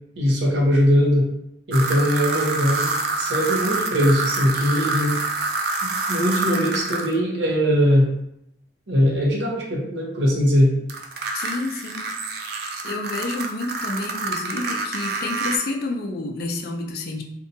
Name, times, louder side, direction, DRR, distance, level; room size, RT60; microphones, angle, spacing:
voice 1, 0.2-1.3 1.7-5.2 5.8-8.1 8.9-10.7, equal, 85° right, -2 dB, 0.7 m, -20 dB
sound 1, 1.7-7.1 10.9-15.6, right 3 dB, 60° right, 0.4 m, -27 dB
voice 2, 11.3-12.1 12.5-17.2, left 2 dB, 60° left, 2 dB, 0.4 m, -29 dB
2.6 x 2.2 x 2.6 m, 0.80 s
head